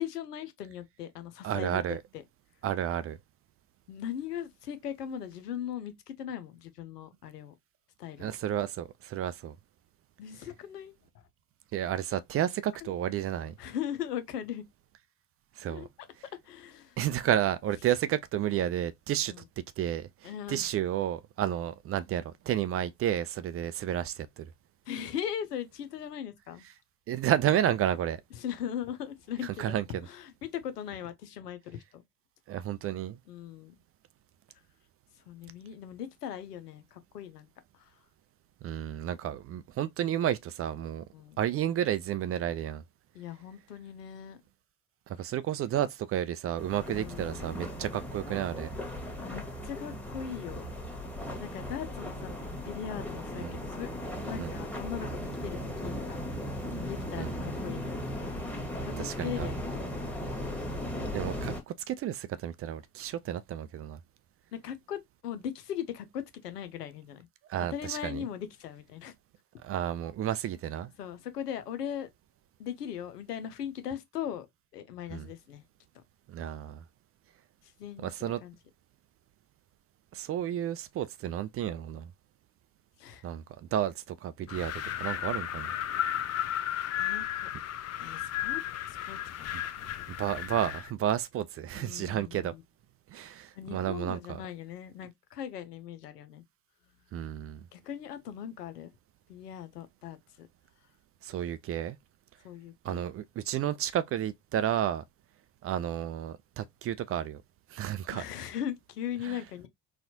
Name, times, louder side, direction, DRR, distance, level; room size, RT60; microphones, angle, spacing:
voice 1, 0.0-2.2 3.9-7.5 8.0-8.3 10.2-11.3 12.8-12.9 13.6-14.7 15.7-15.9 16.4-17.0 19.3-19.4 20.2-20.7 21.4-21.5 24.9-26.6 28.3-32.0 33.3-33.8 35.2-37.5 37.7-37.9 41.1-41.4 43.1-44.4 46.9-47.6 49.2-50.7 51.4-53.9 54.2-56.2 56.7-58.0 58.8-58.9 59.2-60.3 64.5-67.3 67.7-69.1 71.0-72.1 72.6-74.5 74.7-75.6 77.6-78.5 83.0-83.2 84.8-85.2 87.0-87.5 88.0-88.6 88.9-89.5 91.8-92.6 93.5-96.4 97.7-98.9 99.3-100.5 102.4-103.0 108.1-109.7, left 9 dB, 90° left, 0.7 m, -39 dB
voice 2, 1.4-2.0 2.6-3.2 8.2-9.6 11.7-13.5 15.6-15.8 17.0-19.3 19.8-24.5 27.1-28.2 29.4-29.8 32.5-33.2 38.6-41.0 41.4-42.8 45.1-48.7 53.4-53.5 54.4-54.5 57.2-57.3 59.0-59.5 61.1-64.0 67.5-68.2 69.6-70.9 75.1-75.3 76.3-76.8 78.0-78.4 80.1-82.1 83.2-83.4 83.7-85.7 90.2-92.5 93.1-94.4 97.1-97.6 101.2-102.0 102.8-105.0 105.6-107.4 107.7-108.2 109.3-109.4, right 11 dB, 30° right, 0.4 m, -31 dB
sound 1, 46.6-61.6, left 1 dB, 5° left, 1.4 m, -37 dB
Wind, 84.5-90.9, left 11 dB, 35° left, 0.5 m, -34 dB
4.2 x 2.4 x 2.7 m
hypercardioid pair, 65°, 46 cm